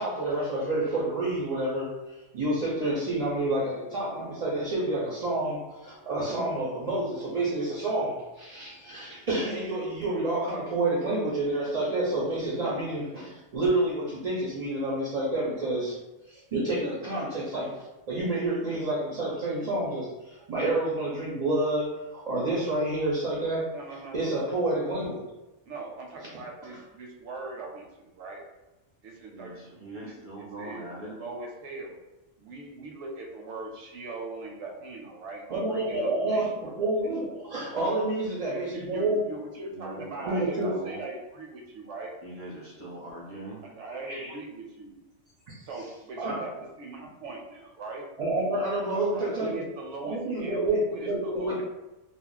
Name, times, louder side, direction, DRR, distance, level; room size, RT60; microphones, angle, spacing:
voice 1, 0.0-1.9 2.3-16.0 16.3-23.7 24.1-25.2 35.5-39.2 39.8-39.9 40.2-40.7 44.1-44.3 45.5-45.6 46.2-46.4 48.2-49.6 50.0-51.6, right 2 dB, 50° right, -6 dB, 0.5 m, -29 dB
voice 2, 23.7-24.4 25.7-28.4 29.0-30.1 30.6-31.9 32.4-36.7 38.5-42.1 43.6-45.0 45.7-46.5 46.8-48.0 48.9-51.6, right 3 dB, 75° right, 0 dB, 0.9 m, -40 dB
voice 3, 29.3-31.2 39.7-40.3 40.6-41.0 42.2-43.7, right 2 dB, 15° left, -7 dB, 0.7 m, -42 dB
2.4 x 2.0 x 3.8 m, 1.0 s
omnidirectional pair, 1.3 m